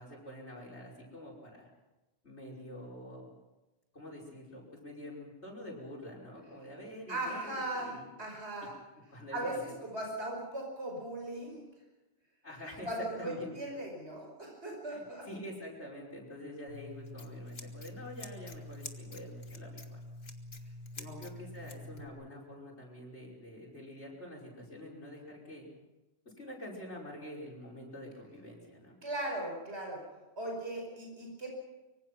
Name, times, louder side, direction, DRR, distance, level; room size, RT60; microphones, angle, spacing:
voice 1, 0.0-1.7 2.2-3.3 3.9-8.1 9.1-9.8 12.4-13.5 14.9-20.0 21.0-25.7 26.4-29.0, left 1 dB, 90° left, -2 dB, 5.8 m, -46 dB
voice 2, 7.1-8.7 9.3-9.5 9.8-11.6 12.8-15.3 21.0-21.2 29.0-30.0 30.4-31.6, right 1 dB, 80° right, 0 dB, 5.7 m, -38 dB
Scissors, 16.7-22.1, left 2 dB, 65° left, 2.1 m, -46 dB
25.0 x 24.0 x 6.0 m, 1.1 s
omnidirectional pair, 1.1 m